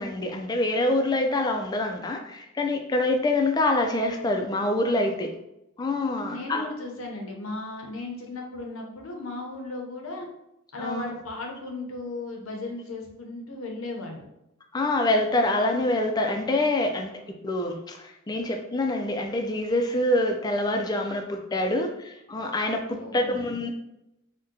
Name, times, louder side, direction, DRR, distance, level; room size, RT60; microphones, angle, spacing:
voice 1, 0.0-5.3 5.8-6.7 10.8-11.0 14.7-23.7, left 2 dB, 20° left, 3 dB, 0.3 m, -26 dB
voice 2, 6.1-10.3 10.7-14.2 22.9-23.5, left 2 dB, 80° left, 1 dB, 0.7 m, -36 dB
2.7 x 2.1 x 3.6 m, 0.87 s
head